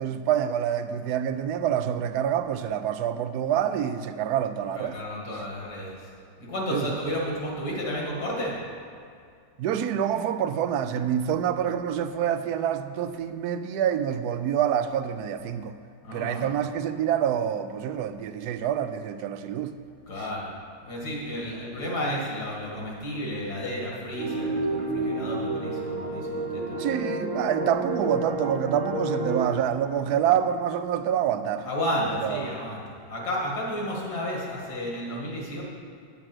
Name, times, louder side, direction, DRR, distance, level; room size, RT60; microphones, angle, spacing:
voice 1, 0.0-5.0 6.7-6.9 9.6-15.7 16.1-19.7 20.2-20.3 26.8-31.7 32.1-32.5, right 9 dB, 75° right, 1.1 m, -27 dB
voice 2, 4.7-6.0 6.4-8.5 16.0-16.5 20.1-20.5 20.8-26.8 31.6-35.6, equal, 70° left, 2.7 m, -32 dB
sound 1, 24.2-29.5, right 2 dB, 55° right, 1.2 m, -30 dB
8.8 x 8.6 x 6.1 m
omnidirectional pair, 1.8 m